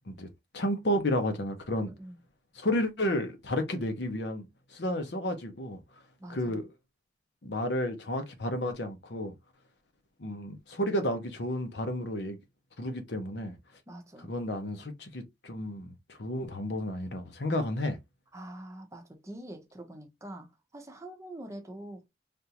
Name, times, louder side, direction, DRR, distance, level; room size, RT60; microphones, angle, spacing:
voice 1, 0.5-1.9 2.5-4.5 4.7-5.8 6.3-6.7 7.4-9.3 10.2-12.4 12.8-13.5 14.2-18.0, left 1 dB, 80° left, 0.9 m, -32 dB
voice 2, 6.2-6.6 13.9-14.3 18.3-22.1, right 1 dB, 15° right, 0.6 m, -45 dB
3.5 x 2.5 x 2.8 m
head